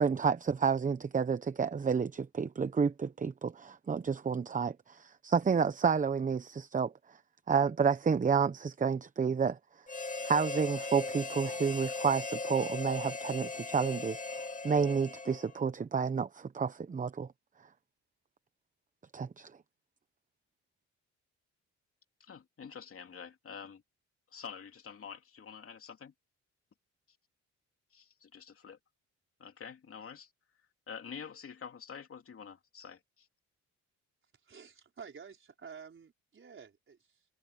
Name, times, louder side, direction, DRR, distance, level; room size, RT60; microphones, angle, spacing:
voice 1, 0.0-6.9 7.5-9.6 10.2-17.3 19.1-19.5, right 6 dB, 25° right, 0.8 m, -30 dB
Harmonica, 9.9-15.7, left 3 dB, 25° left, 2.5 m, -38 dB
voice 2, 22.2-23.8 24.3-26.1 27.9-28.8 29.4-30.3 30.9-33.3, left 6 dB, 45° left, 3.1 m, -47 dB
voice 3, 34.4-37.3, right 6 dB, 40° right, 5.0 m, -51 dB
cardioid pair, 90°, 30 cm